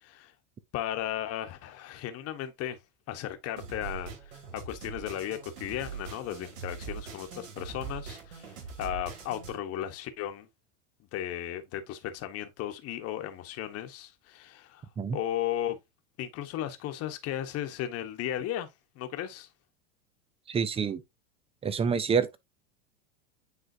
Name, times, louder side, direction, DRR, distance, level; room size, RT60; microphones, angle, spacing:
voice 1, 0.0-0.3 0.7-2.8 3.1-10.5 11.1-14.8 15.1-15.8 16.2-18.7 18.9-19.5, left 11 dB, 40° left, 1.3 m, -35 dB
sound 1, 3.6-9.6, right 6 dB, 85° right, 3.4 m, -42 dB
voice 2, 20.5-21.0 21.6-22.4, right 6 dB, 15° right, 0.6 m, -27 dB
9.5 x 3.7 x 2.8 m
supercardioid pair, 130°, 37 cm